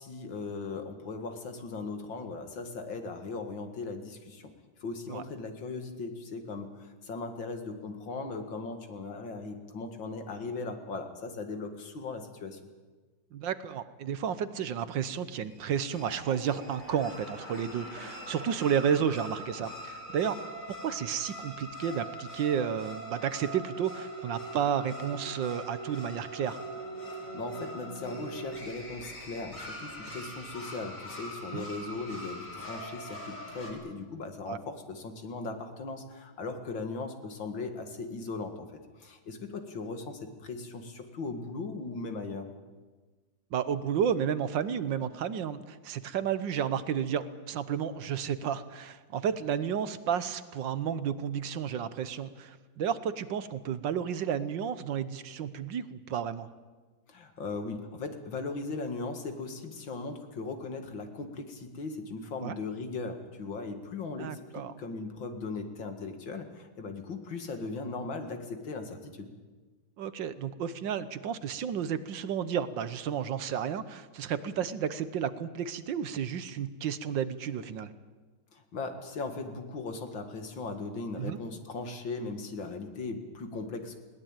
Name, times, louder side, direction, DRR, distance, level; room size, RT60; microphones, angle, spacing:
voice 1, 0.0-4.5 4.8-12.6 27.1-42.5 57.1-69.3 78.5-84.0, left 3 dB, 75° left, 6 dB, 2.8 m, -38 dB
voice 2, 13.3-20.4 20.8-26.6 31.5-31.6 34.5-34.6 43.5-56.5 62.4-62.6 64.2-64.7 70.0-77.9 81.2-81.4, right 8 dB, 75° right, 13 dB, 1.7 m, -32 dB
sound 1, 15.4-33.7, right 1 dB, 40° left, 4.5 m, -42 dB
20.5 x 18.5 x 8.9 m, 1.3 s
omnidirectional pair, 2.1 m